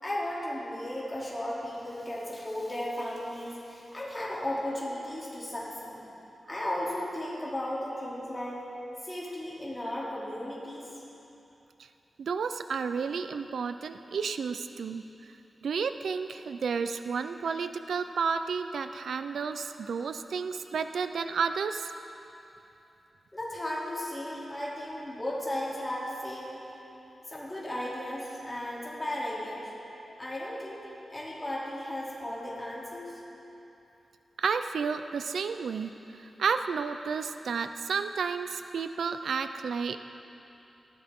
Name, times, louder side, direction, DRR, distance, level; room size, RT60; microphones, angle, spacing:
voice 1, 0.0-6.0 6.5-8.6 9.0-10.9 23.3-26.5 27.3-29.7 30.2-33.2, left 1 dB, 15° left, -6 dB, 2.9 m, -35 dB
voice 2, 12.2-15.3 15.6-21.9 34.4-40.0, right 5 dB, 80° right, 9 dB, 0.4 m, -31 dB
18.5 x 15.0 x 3.7 m, 2.9 s
wide cardioid pair, 170°, 0 cm